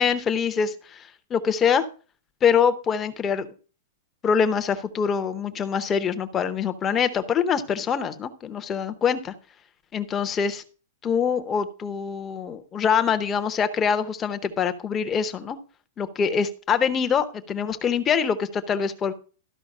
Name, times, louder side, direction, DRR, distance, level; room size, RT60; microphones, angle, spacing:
voice 1, 0.0-1.8 2.4-3.5 4.2-9.3 9.9-10.6 11.0-15.6 16.0-19.1, left 7 dB, 15° left, 10 dB, 0.8 m, -24 dB
13.0 x 5.6 x 5.3 m, 0.37 s
supercardioid pair, 180°, 0 cm